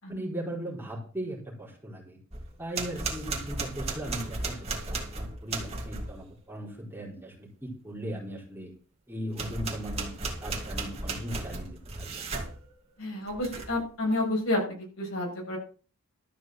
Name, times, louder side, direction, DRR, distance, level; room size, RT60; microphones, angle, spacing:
voice 1, 0.1-2.2 2.6-8.7 9.1-10.1 10.4-11.7 12.0-12.3, right 1 dB, 10° right, -3 dB, 4.1 m, -38 dB
sound 1, 2.3-6.2 9.3-12.5 13.3-13.8, right 3 dB, 25° right, 2.7 m, -35 dB
voice 2, 13.0-15.6, left 1 dB, 65° left, -1 dB, 7.4 m, -30 dB
13.0 x 6.1 x 7.8 m, 0.39 s
head